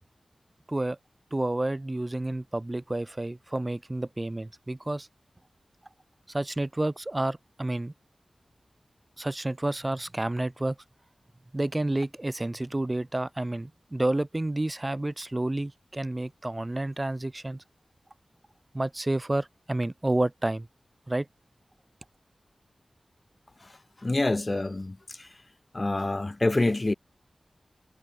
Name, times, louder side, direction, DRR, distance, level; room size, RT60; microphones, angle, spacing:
voice 1, 1.3-5.1 6.3-7.9 9.2-10.7 11.5-17.6 18.7-20.7 21.1-21.3, right 1 dB, 30° right, 3.5 m, -30 dB
voice 2, 24.0-25.3 25.7-26.9, left 2 dB, 40° left, 1.4 m, -26 dB
cardioid pair, 45°, 0 cm